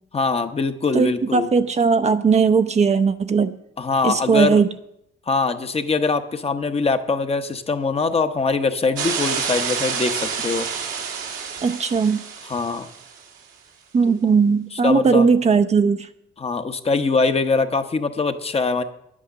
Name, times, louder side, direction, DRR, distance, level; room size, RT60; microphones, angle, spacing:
voice 1, 0.1-1.5 3.8-4.6 5.3-10.7 12.5-12.9 14.7-15.3 16.4-18.8, left 4 dB, 30° left, 8 dB, 1.0 m, -22 dB
voice 2, 0.9-3.5 4.0-4.7 11.6-12.2 13.9-16.1, right 5 dB, 35° right, 10 dB, 0.6 m, -18 dB
sound 1, 9.0-13.2, right 6 dB, 90° right, 1.9 m, -28 dB
10.5 x 8.6 x 6.4 m, 0.79 s
cardioid pair, 90°, 20 cm